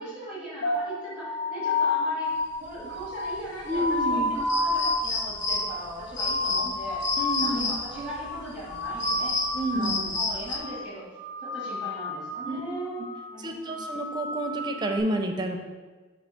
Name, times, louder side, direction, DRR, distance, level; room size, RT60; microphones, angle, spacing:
voice 1, 0.0-7.0 7.4-9.4 9.7-11.0 11.4-13.9, right 1 dB, 25° left, -10 dB, 1.8 m, -39 dB
sound 1, 0.6-7.6 7.9-8.4 8.6-10.1 10.4-10.8 11.1-12.6 12.9-13.3 13.6-15.0, left 2 dB, 80° left, 1.6 m, -30 dB
sound 2, 2.5-10.6, left 3 dB, 60° left, 0.6 m, -32 dB
voice 2, 3.7-4.3 7.2-7.7 9.5-10.0 12.5-12.6 13.4-15.6, right 1 dB, 20° right, 3 dB, 0.5 m, -29 dB
6.2 x 2.8 x 5.6 m, 1.3 s
head